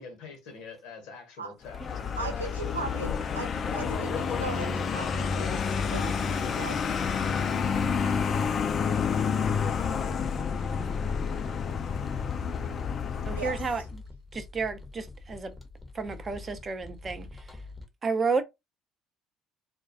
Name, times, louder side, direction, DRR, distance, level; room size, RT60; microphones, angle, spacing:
voice 1, 0.0-2.7, left 5 dB, 60° left, 0.8 m, -45 dB
Vehicle, 1.6-13.9, left 6 dB, 40° left, 0.3 m, -29 dB
voice 2, 2.2-5.6 5.9-6.8 13.3-13.6, right 3 dB, 85° right, 0.5 m, -38 dB
sound 1, 6.0-17.9, left 2 dB, 10° left, 0.7 m, -47 dB
voice 3, 13.2-13.8 14.3-15.5 15.9-17.3 18.0-18.4, right 4 dB, 30° right, 0.5 m, -31 dB
2.2 x 2.1 x 2.7 m
figure-of-eight pair, 55°, 0 cm